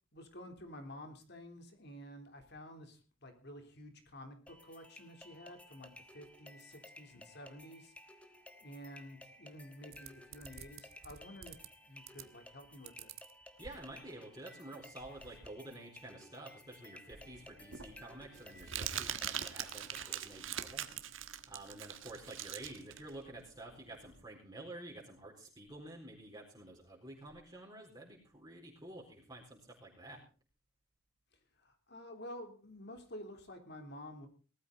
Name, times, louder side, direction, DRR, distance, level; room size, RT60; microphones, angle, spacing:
voice 1, 0.1-7.9 8.6-11.6 11.8-13.1 31.6-34.3, left 1 dB, 55° left, 6 dB, 3.5 m, -51 dB
sound 1, 4.5-20.5, left 1 dB, 5° left, 1.4 m, -57 dB
sound 2, 9.9-11.7 12.0-12.5 12.9-14.1 14.5-14.6 14.8-15.5, right 8 dB, 85° right, 1.2 m, -52 dB
voice 2, 13.6-20.9 21.2-30.2, right 1 dB, 20° right, -3 dB, 4.2 m, -50 dB
Crumpling crinkling, 17.1-24.2, right 9 dB, 70° right, 1.5 m, -42 dB
19.0 x 13.5 x 4.1 m, 0.38 s
head